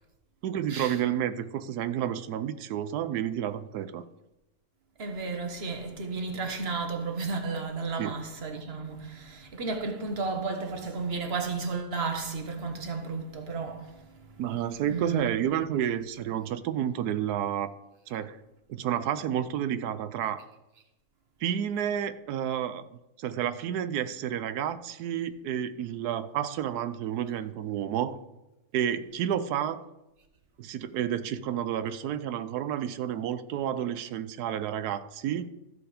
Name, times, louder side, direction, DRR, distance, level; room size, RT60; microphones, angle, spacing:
voice 1, 0.4-4.0 8.0-8.1 14.4-17.7 18.1-18.4 18.7-20.4 21.4-22.9 23.2-28.2 28.7-29.8 30.6-35.5, right 10 dB, 90° right, 1.2 m, -30 dB
voice 2, 5.0-14.3 14.8-15.3, right 4 dB, 45° right, 1.4 m, -33 dB
14.0 x 5.1 x 5.0 m
omnidirectional pair, 1.6 m